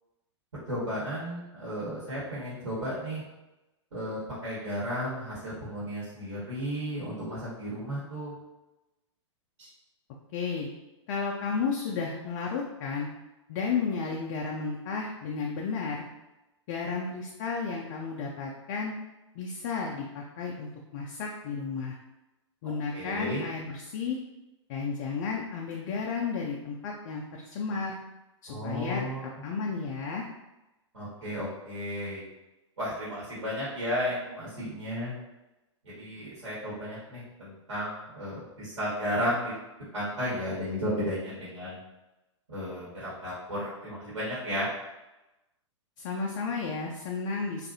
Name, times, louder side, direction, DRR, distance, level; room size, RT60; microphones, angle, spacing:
voice 1, 0.7-3.2 3.9-8.3 9.6-9.7 22.9-23.4 28.5-29.3 30.9-32.3 32.8-35.1 35.8-39.5 39.9-41.8 42.5-44.7, equal, 65° right, -8 dB, 1.3 m, -33 dB
voice 2, 10.3-10.7 11.1-13.1 13.5-16.0 16.7-18.9 19.4-22.0 22.6-24.2 24.7-28.0 28.4-29.0 29.4-30.3 46.0-47.7, left 5 dB, 40° left, -1 dB, 0.4 m, -33 dB
2.6 x 2.4 x 2.7 m, 1.0 s
figure-of-eight pair, 105°, 16 cm